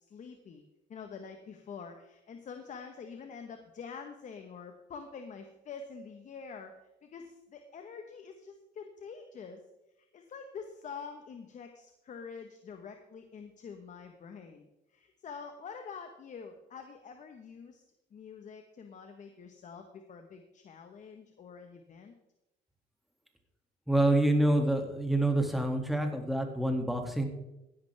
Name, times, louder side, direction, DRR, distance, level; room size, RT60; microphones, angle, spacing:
voice 1, 0.1-0.6 0.9-9.6 10.0-17.8 18.1-22.1, left 5 dB, 45° left, 6 dB, 1.3 m, -46 dB
voice 2, 23.9-27.2, right 1 dB, ahead, 3 dB, 2.3 m, -27 dB
16.0 x 11.0 x 3.5 m, 0.93 s
cardioid pair, 110°, 17 cm